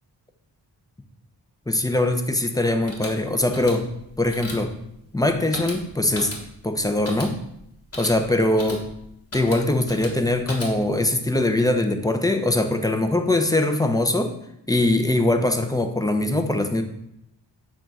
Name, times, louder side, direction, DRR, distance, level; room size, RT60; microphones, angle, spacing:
voice 1, 1.7-3.9 4.2-4.7 5.1-6.3 6.6-7.4 8.0-8.9 9.3-14.3 14.7-16.8, left 1 dB, 10° left, 6 dB, 0.6 m, -22 dB
sound 1, 2.7-11.1, left 1 dB, 35° left, 1.5 m, -38 dB
7.3 x 2.5 x 5.3 m, 0.78 s
wide cardioid pair, 70°, 42 cm